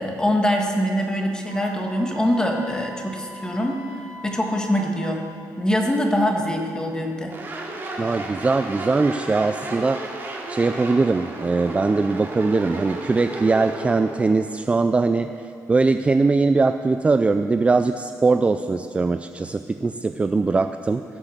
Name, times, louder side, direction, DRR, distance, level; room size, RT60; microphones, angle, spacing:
voice 1, 0.0-3.8 4.2-5.2 5.6-7.4, equal, 10° left, 1 dB, 1.7 m, -23 dB
Wind instrument woodwind instrument, 1.5-5.2, equal, 55° right, 2.2 m, -41 dB
sound 1, 7.3-14.3, right 2 dB, 35° right, 2.6 m, -33 dB
voice 2, 8.0-15.3 15.7-21.0, right 3 dB, 20° right, 9 dB, 0.3 m, -21 dB
16.5 x 6.6 x 7.4 m, 2.4 s
cardioid pair, 120°, 7 cm